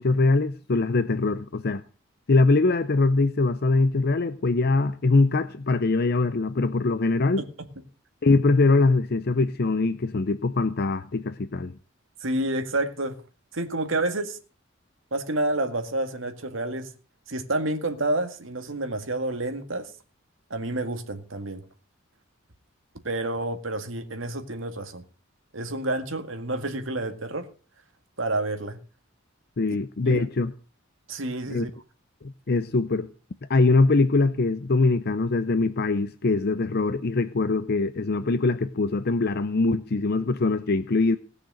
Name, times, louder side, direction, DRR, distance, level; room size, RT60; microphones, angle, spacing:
voice 1, 0.0-1.8 2.3-7.4 8.2-11.7 29.6-30.5 31.5-31.7 32.2-33.1 33.5-41.2, left 3 dB, 50° left, 0.6 m, -22 dB
voice 2, 12.2-13.2 13.5-14.4 15.1-16.9 17.3-19.9 20.5-21.6 23.0-25.0 25.5-27.5 28.2-28.8 30.1-30.3 31.1-31.7, right 2 dB, 65° right, 2.0 m, -29 dB
18.0 x 6.6 x 7.6 m
head